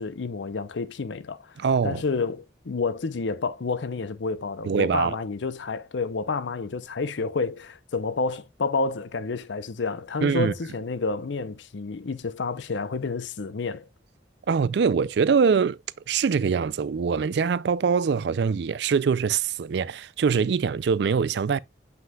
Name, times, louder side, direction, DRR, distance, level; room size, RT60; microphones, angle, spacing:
voice 1, 0.0-1.6 1.8-13.9, left 4 dB, 75° left, 0.6 m, -29 dB
voice 2, 1.6-2.0 4.6-5.2 10.2-10.5 14.5-15.8 16.1-21.6, right 6 dB, 65° right, 0.4 m, -23 dB
7.6 x 5.7 x 2.3 m
head